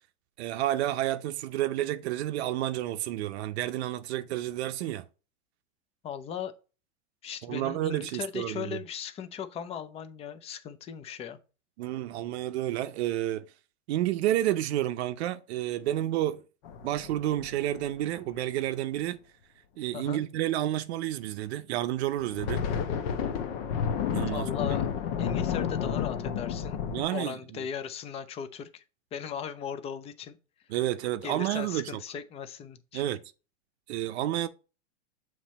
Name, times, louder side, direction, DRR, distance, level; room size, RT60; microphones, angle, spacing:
voice 1, 0.4-5.0 7.4-8.8 11.8-13.5 13.9-16.4 16.8-19.2 19.8-22.6 24.1-24.7 26.9-27.6 30.7-32.0 32.9-33.2 33.9-34.5, right 13 dB, 65° right, 0.6 m, -30 dB
voice 2, 6.0-6.5 7.2-11.4 19.9-20.2 24.3-24.9 25.2-26.8 27.1-28.8 29.1-30.4 31.2-33.0, left 8 dB, 20° left, 0.4 m, -38 dB
sound 1, 16.6-18.4 22.2-27.0, left 7 dB, 55° left, 0.9 m, -31 dB
7.2 x 3.2 x 4.1 m
hypercardioid pair, 125°, 35 cm